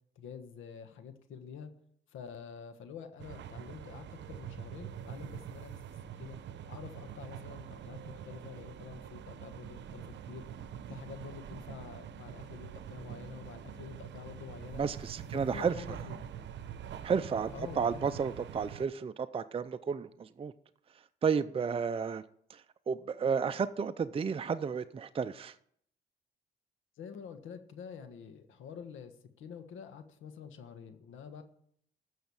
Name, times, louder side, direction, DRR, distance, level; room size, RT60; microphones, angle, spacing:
voice 1, 0.1-1.7 2.1-5.8 6.2-6.4 6.7-10.5 10.9-14.8 15.3-16.3 17.5-18.2 27.0-31.4, left 7 dB, 80° left, 1.4 m, -47 dB
sound 1, 3.2-18.8, right 9 dB, 65° right, 0.8 m, -45 dB
voice 2, 14.8-15.7 17.0-17.5 17.8-20.5 21.2-22.2 22.5-25.5, right 6 dB, 30° right, 0.5 m, -32 dB
13.0 x 6.5 x 7.1 m
cardioid pair, 90°, 20 cm